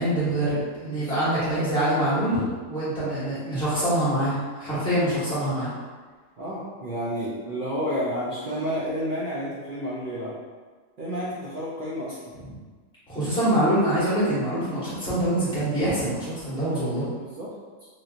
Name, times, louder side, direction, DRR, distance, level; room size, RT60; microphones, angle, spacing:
voice 1, 0.0-5.7 12.4-12.5 13.1-17.1, right 1 dB, 5° left, -11 dB, 1.2 m, -25 dB
voice 2, 6.4-10.4 11.0-12.2 17.2-17.5, equal, 70° right, -8 dB, 0.4 m, -30 dB
3.1 x 2.7 x 2.4 m, 1.4 s
omnidirectional pair, 1.5 m